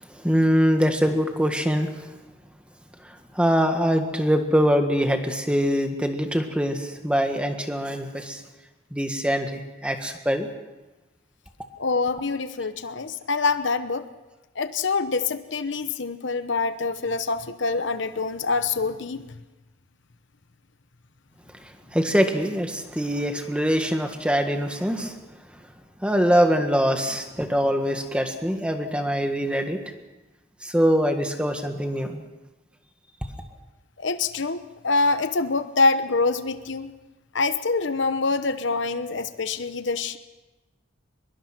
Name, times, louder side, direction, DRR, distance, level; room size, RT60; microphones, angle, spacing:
voice 1, 0.2-1.9 3.3-8.4 8.9-10.5 21.9-25.2 26.0-29.8 30.6-32.2, equal, 5° right, 5 dB, 1.7 m, -23 dB
voice 2, 11.8-14.1 14.6-19.2 34.0-36.9 37.3-40.2, left 3 dB, 65° left, 11 dB, 0.9 m, -25 dB
23.0 x 22.0 x 6.0 m, 1.1 s
head